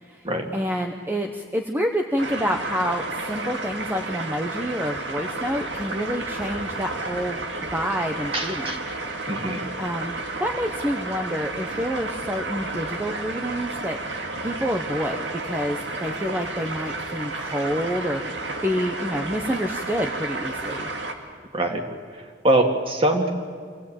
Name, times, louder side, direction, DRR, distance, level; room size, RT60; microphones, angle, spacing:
voice 1, 0.5-7.4 7.7-8.7 9.8-18.4 18.6-20.9, equal, 10° right, 3 dB, 1.0 m, -28 dB
sound 1, 2.2-21.1, right 2 dB, 85° right, 2.2 m, -32 dB
voice 2, 8.3-8.8 9.3-9.6 21.5-21.8 22.4-23.3, right 1 dB, 30° right, 3 dB, 2.3 m, -22 dB
26.0 x 17.0 x 8.8 m, 2.1 s
head